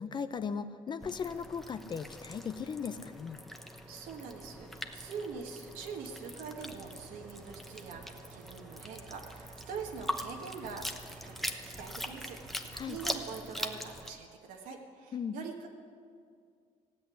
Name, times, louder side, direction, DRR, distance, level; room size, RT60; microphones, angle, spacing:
voice 1, 0.0-3.4 12.7-13.0 15.1-15.4, left 6 dB, 35° left, 11 dB, 0.5 m, -37 dB
sound 1, 1.0-14.1, equal, ahead, 0.9 m, -42 dB
voice 2, 3.6-10.9 11.2-11.3 11.6-15.7, right 5 dB, 90° right, 0 dB, 1.5 m, -44 dB
sound 2, 6.6-12.8, right 9 dB, 70° right, 0.6 m, -56 dB
16.0 x 8.2 x 9.9 m, 2.2 s
cardioid pair, 140°, 14 cm